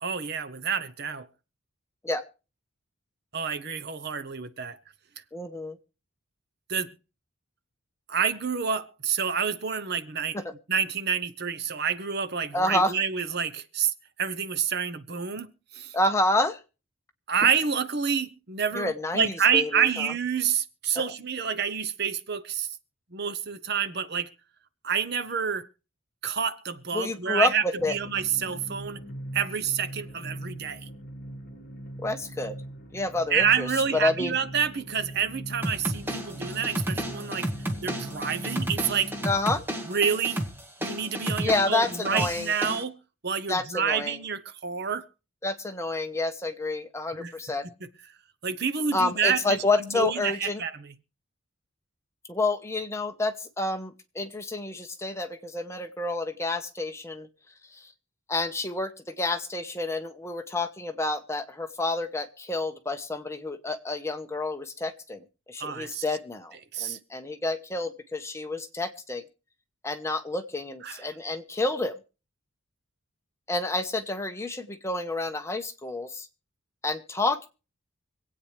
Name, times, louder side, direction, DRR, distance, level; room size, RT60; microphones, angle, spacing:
voice 1, 0.0-1.3 3.3-4.8 6.7-6.9 8.1-10.4 10.7-15.9 17.3-22.7 23.1-24.3 24.8-25.7 26.2-29.0 29.3-30.9 33.3-37.5 37.8-39.1 39.9-40.4 40.8-43.0 43.2-45.1 47.2-47.3 48.4-50.9 65.6-66.0 66.7-67.0 70.8-71.0, right 7 dB, 50° right, 0.8 m, -28 dB
voice 2, 5.3-5.8 10.3-10.5 12.5-12.9 15.9-16.6 18.7-20.1 20.9-21.1 26.9-28.0 32.0-32.6 32.9-34.4 39.2-39.6 41.4-42.5 43.5-44.2 45.4-47.6 48.9-50.6 52.3-57.3 57.7-57.9 58.3-69.2 69.8-72.0 73.5-76.3 76.8-77.5, left 2 dB, 15° left, 1.0 m, -29 dB
sound 1, 27.8-39.3, equal, 45° left, 1.7 m, -41 dB
sound 2, 35.6-42.8, equal, 10° right, 1.4 m, -32 dB
25.5 x 8.7 x 3.3 m
head